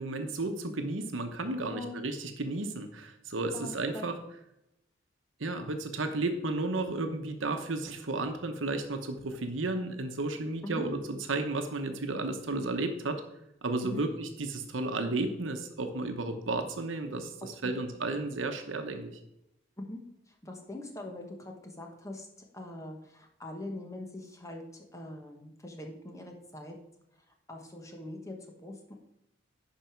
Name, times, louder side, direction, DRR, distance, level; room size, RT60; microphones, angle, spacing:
voice 1, 0.0-4.1 5.4-13.2 13.6-19.1, right 2 dB, 80° right, 6 dB, 1.1 m, -33 dB
voice 2, 1.6-2.0 3.5-4.1 10.6-10.9 13.8-14.0 17.4-17.8 19.8-26.8 27.5-28.9, left 1 dB, 15° left, 2 dB, 1.2 m, -43 dB
10.5 x 5.0 x 4.6 m, 0.84 s
head